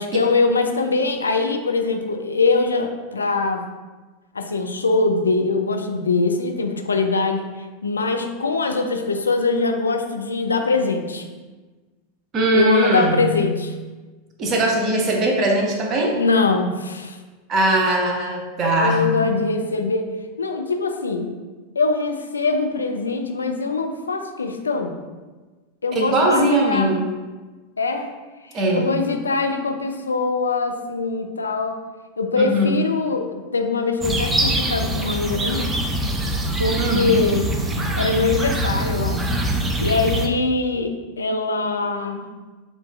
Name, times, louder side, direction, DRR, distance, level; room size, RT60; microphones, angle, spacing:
voice 1, 0.0-3.6 4.3-11.3 12.5-13.7 16.1-17.2 18.8-20.1 20.4-21.3 21.8-25.0 25.8-26.9 27.8-28.1 28.4-31.8 32.2-35.7 36.6-37.4 37.9-39.3 39.8-42.3, left 3 dB, 85° left, 5 dB, 0.4 m, -22 dB
voice 2, 12.3-13.4 14.4-16.2 17.5-19.2 25.9-27.0 28.5-28.9 32.4-32.8 36.8-37.1, right 1 dB, 35° right, 0 dB, 0.9 m, -20 dB
sound 1, 34.0-40.3, right 1 dB, 15° right, 0.5 m, -23 dB
6.6 x 2.6 x 2.3 m, 1.3 s
figure-of-eight pair, 90°, 0 cm